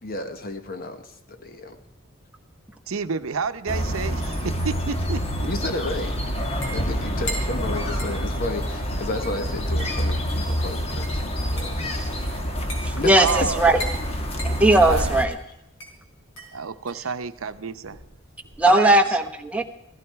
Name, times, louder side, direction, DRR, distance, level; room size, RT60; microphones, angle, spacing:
voice 1, 0.0-1.8 5.5-6.2 6.7-12.0 13.0-13.1, left 2 dB, 45° left, 7 dB, 1.0 m, -32 dB
voice 2, 2.9-5.5 13.1-13.7 14.8-15.2 16.5-18.0 18.7-19.0, right 5 dB, 85° right, 12 dB, 0.7 m, -29 dB
sound 1, 3.7-15.3, equal, 30° left, 1.4 m, -27 dB
sound 2, 6.6-18.7, equal, 70° left, 4.6 m, -40 dB
voice 3, 12.8-13.8 14.4-15.4 18.6-19.6, right 1 dB, 5° right, 5 dB, 1.0 m, -18 dB
16.5 x 15.0 x 4.6 m, 0.84 s
head